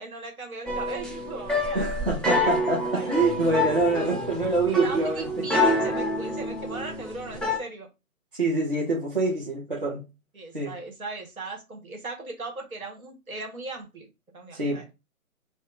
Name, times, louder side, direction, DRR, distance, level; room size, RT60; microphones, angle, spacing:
voice 1, 0.0-1.9 2.9-4.1 4.8-7.9 10.3-14.8, right 3 dB, 70° right, 1.3 m, -38 dB
sound 1, 0.7-7.6, left 1 dB, ahead, 0.3 m, -27 dB
voice 2, 1.7-5.5 8.3-10.1 10.5-10.7 14.5-14.9, right 2 dB, 40° right, 0.6 m, -26 dB
2.7 x 2.1 x 3.7 m
hypercardioid pair, 175°, 44 cm